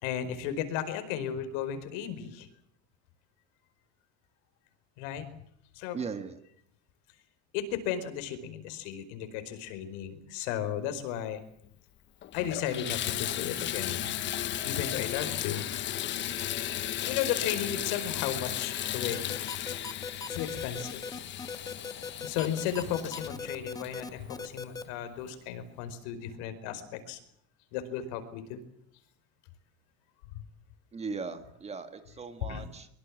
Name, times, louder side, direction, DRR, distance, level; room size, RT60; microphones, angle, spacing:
voice 1, 0.0-2.5 5.0-5.2 5.7-6.0 7.5-11.4 12.3-14.1 14.6-15.6 17.0-19.3 20.3-21.0 22.2-27.2 27.7-28.6 32.5-32.7, left 9 dB, 65° left, 10 dB, 4.9 m, -34 dB
voice 2, 5.9-6.4 30.9-32.9, right 5 dB, 15° right, 9 dB, 1.9 m, -38 dB
Water tap faucet / Bathtub (filling or washing), 11.6-11.7 12.2-24.6 25.3-25.4 25.9-26.0, left 12 dB, 30° left, 1.2 m, -35 dB
sound 1, 19.1-24.8, left 4 dB, 10° left, 1.2 m, -39 dB
23.5 x 23.5 x 7.4 m, 0.69 s
cardioid pair, 170°, 37 cm